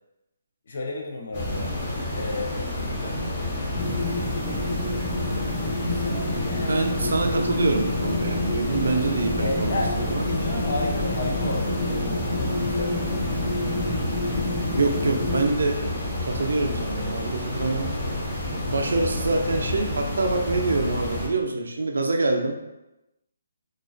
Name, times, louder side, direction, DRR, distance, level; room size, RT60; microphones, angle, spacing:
voice 1, 0.7-1.7 2.1-3.2 5.8-6.8 9.4-13.4, left 2 dB, 60° left, -1 dB, 0.5 m, -33 dB
sound 1, 1.3-21.3, left 1 dB, 35° left, 1.0 m, -29 dB
sound 2, 3.8-15.5, left 1 dB, 10° left, 0.5 m, -29 dB
voice 2, 6.7-9.8 10.1-10.2 14.8-17.9 18.7-22.5, right 3 dB, 75° right, 3 dB, 0.4 m, -25 dB
2.3 x 2.2 x 2.4 m, 0.96 s
hypercardioid pair, 155°, 0 cm